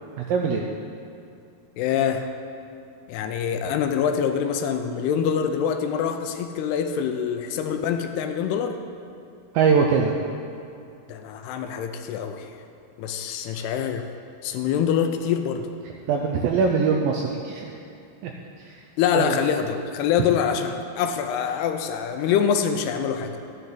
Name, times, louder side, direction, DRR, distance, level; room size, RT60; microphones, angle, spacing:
voice 1, 0.2-0.6 9.5-10.1 16.1-17.8 18.2-18.3 18.7-18.8 19.1-19.4, right 5 dB, 90° right, 1 dB, 2.0 m, -22 dB
voice 2, 1.8-2.3 3.1-8.8 11.1-12.5 13.0-14.1 14.4-15.7 19.0-23.4, left 8 dB, 85° left, 7 dB, 2.6 m, -25 dB
13.5 x 9.8 x 3.8 m, 2.5 s
omnidirectional pair, 4.7 m